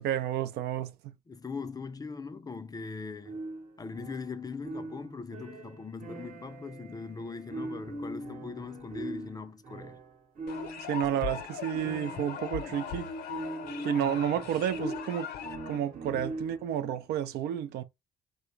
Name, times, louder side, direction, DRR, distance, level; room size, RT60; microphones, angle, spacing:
voice 1, 0.0-1.1 10.9-13.1 13.8-15.3 15.7-17.8, right 10 dB, 65° right, 0.4 m, -31 dB
voice 2, 1.3-3.4 3.8-10.0 16.1-16.2, left 4 dB, 20° left, 0.4 m, -40 dB
sound 1, 3.2-16.8, right 2 dB, 45° right, 1.0 m, -42 dB
sound 2, 10.5-15.8, left 8 dB, 60° left, 0.6 m, -39 dB
2.5 x 2.1 x 3.0 m
hypercardioid pair, 55°, 18 cm